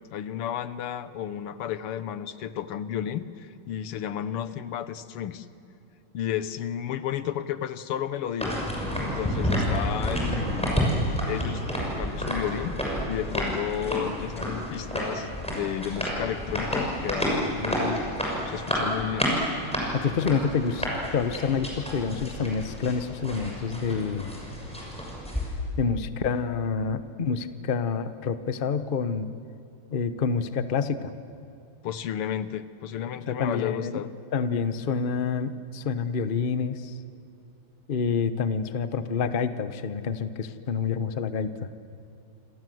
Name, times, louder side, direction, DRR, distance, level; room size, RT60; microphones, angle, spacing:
voice 1, 0.1-5.5 6.1-8.6 9.0-10.9 11.3-12.8 13.1-18.1 18.5-19.3 31.8-34.1, left 10 dB, 90° left, 13 dB, 1.9 m, -32 dB
sound 1, 8.4-25.5, equal, 5° left, 6.6 m, -30 dB
voice 2, 19.9-24.4 25.8-29.3 29.9-31.1 33.3-34.0 34.3-36.9 37.9-41.7, left 5 dB, 40° left, 11 dB, 0.7 m, -28 dB
28.5 x 26.5 x 7.8 m, 2.8 s
omnidirectional pair, 2.4 m